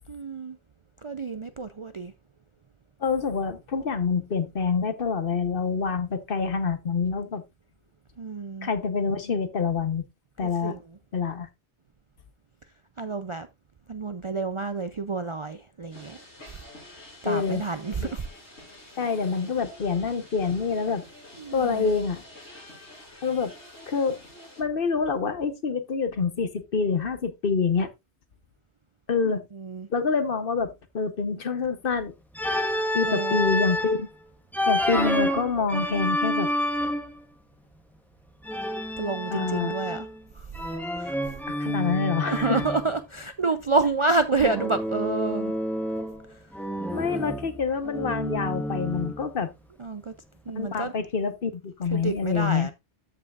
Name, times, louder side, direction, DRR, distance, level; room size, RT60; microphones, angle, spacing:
voice 1, 0.1-0.6 1.0-2.1 8.2-8.7 10.4-11.0 13.0-13.5 13.9-16.2 16.5-16.6 16.9-18.3 21.4-21.9 29.2-29.9 33.0-33.6 39.0-40.1 40.3-40.5 41.0-41.3 42.3-45.6 46.3-46.6 47.1-47.3 49.8-50.1 50.5-50.9 51.9-52.7, right 3 dB, 40° right, 0.4 m, -29 dB
voice 2, 3.0-7.4 8.6-10.0 10.4-10.7 11.1-11.5 17.2-17.6 18.0-18.1 19.0-21.1 21.5-22.2 23.2-23.5 23.9-24.2 24.6-27.9 29.1-29.4 29.9-32.1 32.9-34.1 34.7-36.5 39.3-39.7 41.5-42.6 46.9-49.5 50.6-52.7, left 5 dB, 55° left, 1.1 m, -26 dB
sound 1, 15.9-24.6, left 1 dB, 90° left, 6.2 m, -48 dB
Organ, 32.3-34.0 34.5-37.2 38.4-40.2 40.5-42.9 44.4-46.2 46.5-49.3, equal, ahead, 1.3 m, -29 dB
13.5 x 5.5 x 2.4 m
omnidirectional pair, 1.1 m